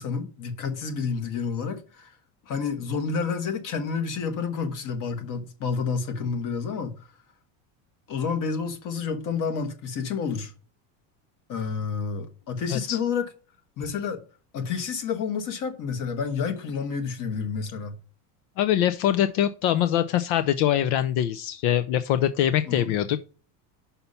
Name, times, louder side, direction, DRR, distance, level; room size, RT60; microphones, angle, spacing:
voice 1, 0.0-2.1 2.4-7.1 8.1-10.5 11.5-13.2 13.8-14.2 14.5-18.0 22.7-22.9, left 5 dB, 45° left, 1.4 m, -29 dB
voice 2, 18.6-23.2, left 11 dB, 80° left, 0.7 m, -23 dB
5.8 x 5.5 x 5.5 m
cardioid pair, 150°, 43 cm